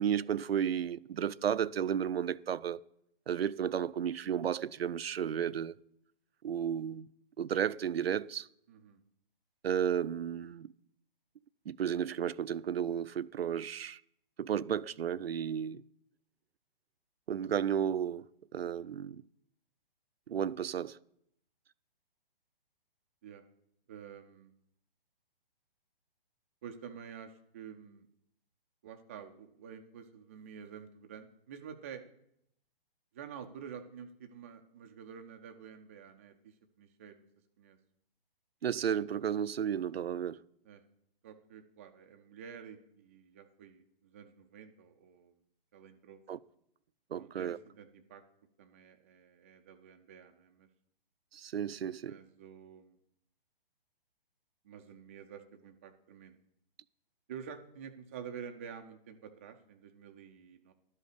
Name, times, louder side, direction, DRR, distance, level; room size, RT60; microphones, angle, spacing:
voice 1, 0.0-2.8 3.3-5.7 6.4-7.1 7.4-8.5 9.6-10.7 11.7-14.0 14.4-15.8 17.3-18.3 18.5-19.2 20.3-21.0 38.6-40.4 46.3-46.4 47.1-47.6 51.3-52.2, right 8 dB, 85° right, 0.5 m, -33 dB
voice 2, 8.7-9.0 23.2-23.4 23.9-24.5 26.6-28.1 28.8-32.0 33.1-37.3 37.6-37.8 40.7-40.8 41.2-45.3 45.7-46.2 47.1-48.2 48.6-50.7 52.0-53.0 54.6-56.4 57.3-60.7, right 7 dB, 15° right, 0.3 m, -49 dB
12.0 x 5.4 x 6.6 m
figure-of-eight pair, 135°, 29 cm